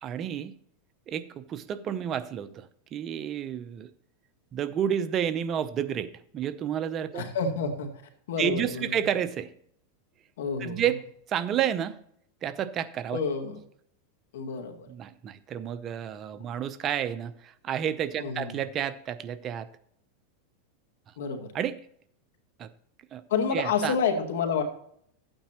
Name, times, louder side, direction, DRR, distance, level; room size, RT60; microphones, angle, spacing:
voice 1, 0.0-0.5 1.1-3.9 4.5-7.3 8.4-9.5 10.6-11.0 11.3-12.0 12.4-13.2 14.9-19.7 21.5-21.8 22.6-22.7 23.1-23.2 23.5-23.9, right 9 dB, 35° right, 12 dB, 0.6 m, -30 dB
voice 2, 7.1-7.9 8.3-8.8 10.4-10.8 13.1-13.6 14.3-14.9 18.2-18.6 21.2-21.5 23.3-24.6, left 5 dB, 80° left, 4 dB, 2.1 m, -29 dB
12.5 x 8.9 x 3.0 m, 0.66 s
supercardioid pair, 130°, 0 cm